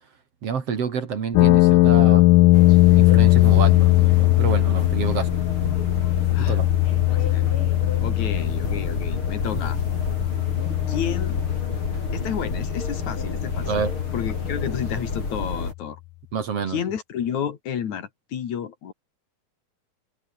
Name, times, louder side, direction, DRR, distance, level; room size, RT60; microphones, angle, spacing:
voice 1, 0.4-2.2 2.9-5.3 6.4-6.7 13.7-13.9 16.3-16.8, right 6 dB, 50° right, 3.1 m, -28 dB
sound 1, 1.4-15.4, left 20 dB, 85° left, 2.2 m, -20 dB
sound 2, 2.5-15.7, left 3 dB, 40° left, 6.5 m, -30 dB
voice 2, 6.3-6.6 6.9-7.5 8.0-9.8 10.9-11.4 12.1-13.7 14.1-16.0 16.7-18.9, left 8 dB, 65° left, 3.2 m, -31 dB
omnidirectional pair, 3.8 m